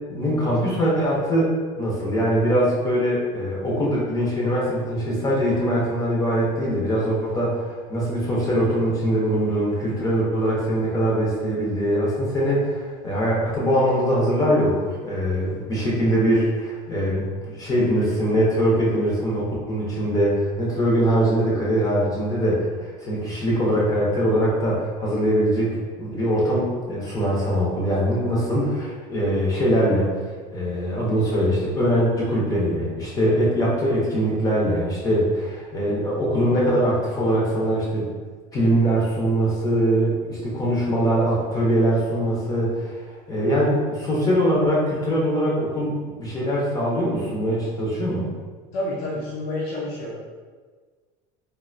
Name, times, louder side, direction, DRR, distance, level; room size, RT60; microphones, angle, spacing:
voice 1, 0.0-25.7 26.0-30.2 30.5-38.1 38.5-48.3, equal, 20° left, -5 dB, 0.6 m, -22 dB
voice 2, 48.7-50.2, left 1 dB, 80° left, -6 dB, 0.7 m, -29 dB
3.3 x 2.5 x 2.5 m, 1.5 s
cardioid pair, 160°, 16 cm